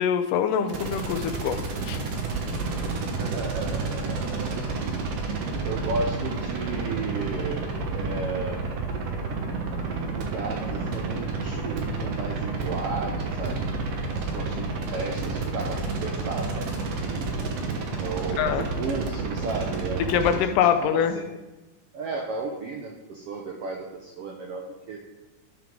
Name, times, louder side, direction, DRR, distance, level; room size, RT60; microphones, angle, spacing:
voice 1, 0.0-2.0 18.4-18.7 20.1-21.2, left 8 dB, 90° left, 8 dB, 2.2 m, -24 dB
sound 1, 0.7-20.4, right 4 dB, 60° right, 1.8 m, -30 dB
voice 2, 3.2-4.6 5.6-8.6 9.8-16.7 17.0-17.2 18.0-21.2 21.9-25.0, right 4 dB, 80° right, 0 dB, 1.3 m, -34 dB
12.5 x 5.9 x 3.8 m, 1.1 s
omnidirectional pair, 3.8 m